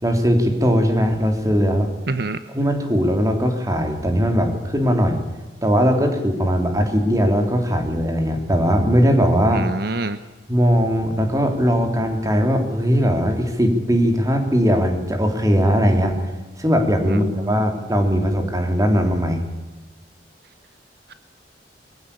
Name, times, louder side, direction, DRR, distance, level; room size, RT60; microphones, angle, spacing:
voice 1, 0.0-1.9 2.5-5.2 5.6-9.7 10.5-16.2 16.6-19.4, equal, 20° right, 4 dB, 3.3 m, -19 dB
voice 2, 2.1-2.4 9.5-10.2 17.1-17.5, right 2 dB, 60° right, 11 dB, 0.9 m, -26 dB
22.0 x 15.5 x 8.4 m, 1.2 s
head